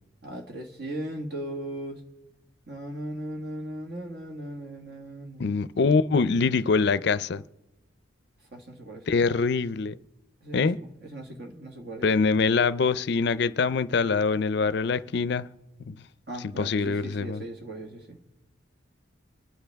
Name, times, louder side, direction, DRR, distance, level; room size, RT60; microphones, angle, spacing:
voice 1, 0.2-2.0 2.7-5.5 8.5-9.1 10.4-12.1 16.3-18.2, right 1 dB, 55° right, 1.8 m, -38 dB
voice 2, 5.4-7.4 9.1-10.0 10.5-10.8 12.0-15.5 15.8-16.0 16.4-17.4, left 4 dB, 60° left, 0.4 m, -24 dB
25.0 x 9.9 x 3.5 m
head